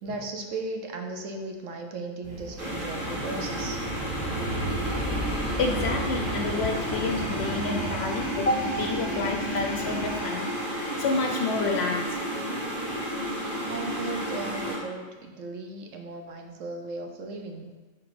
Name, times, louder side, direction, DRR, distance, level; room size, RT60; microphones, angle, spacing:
voice 1, 0.0-3.8 13.7-17.7, right 3 dB, 70° right, 3 dB, 1.1 m, -36 dB
Aircraft, 2.2-10.2, right 1 dB, 5° right, 1.8 m, -35 dB
sound 1, 2.6-14.8, equal, 40° right, 1.6 m, -32 dB
voice 2, 5.3-12.1, left 3 dB, 65° left, 4 dB, 0.7 m, -29 dB
5.9 x 3.9 x 4.8 m, 1.3 s
omnidirectional pair, 1.4 m